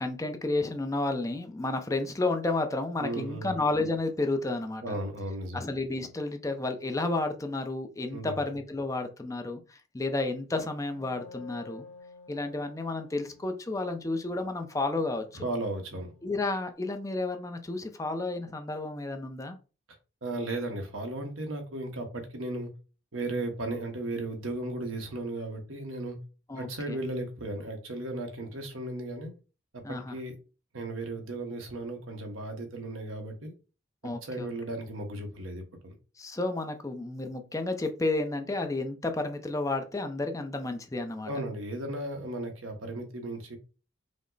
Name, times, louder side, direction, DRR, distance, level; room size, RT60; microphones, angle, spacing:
voice 1, 0.0-5.0 5.5-11.9 12.3-15.3 16.2-19.6 26.5-27.0 29.8-30.2 34.0-34.5 36.2-41.3, left 2 dB, 15° left, 0.4 m, -31 dB
voice 2, 3.0-3.5 4.8-5.6 8.1-8.4 15.3-16.1 20.2-22.7 23.1-26.2 26.6-29.3 29.7-30.3 30.7-33.5 34.0-35.9 41.3-43.6, right 2 dB, 90° right, 1.1 m, -35 dB
Wind instrument woodwind instrument, 10.9-16.6, left 3 dB, 80° left, 1.6 m, -53 dB
5.1 x 2.0 x 3.9 m
head